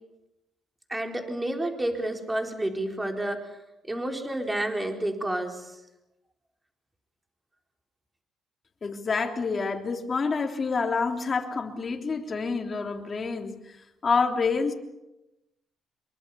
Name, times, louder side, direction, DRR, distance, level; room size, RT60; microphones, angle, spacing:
voice 1, 0.9-3.6 3.8-5.8, right 1 dB, 15° right, 3 dB, 4.3 m, -30 dB
voice 2, 8.8-13.8 14.0-14.7, left 4 dB, 40° left, 3 dB, 3.5 m, -28 dB
25.5 x 23.0 x 7.1 m, 0.95 s
cardioid pair, 90°, 0 cm